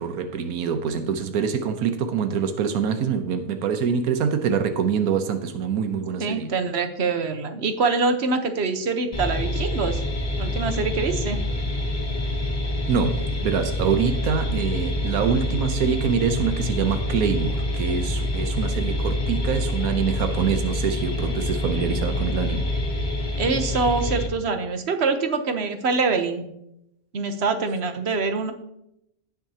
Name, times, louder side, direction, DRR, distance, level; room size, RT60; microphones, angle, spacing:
voice 1, 0.0-6.5 12.9-22.7, right 7 dB, 85° right, 1.3 m, -25 dB
voice 2, 6.2-10.0 10.4-11.4 23.4-26.5 27.1-28.5, right 4 dB, 50° right, 1.1 m, -24 dB
sound 1, 9.1-24.3, left 1 dB, 30° left, 1.0 m, -26 dB
16.5 x 6.5 x 2.8 m
omnidirectional pair, 1.5 m